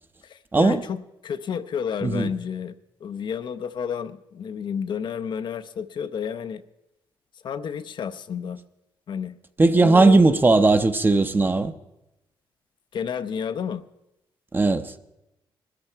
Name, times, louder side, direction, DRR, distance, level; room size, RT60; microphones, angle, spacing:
voice 1, 0.2-2.7 3.0-6.6 7.4-8.6 9.1-9.4 9.8-10.2 12.9-13.8, left 7 dB, 60° left, 0.7 m, -31 dB
voice 2, 9.6-11.7 14.5-14.9, right 3 dB, 20° right, 0.8 m, -18 dB
20.5 x 13.0 x 4.5 m
cardioid pair, 90°, 9 cm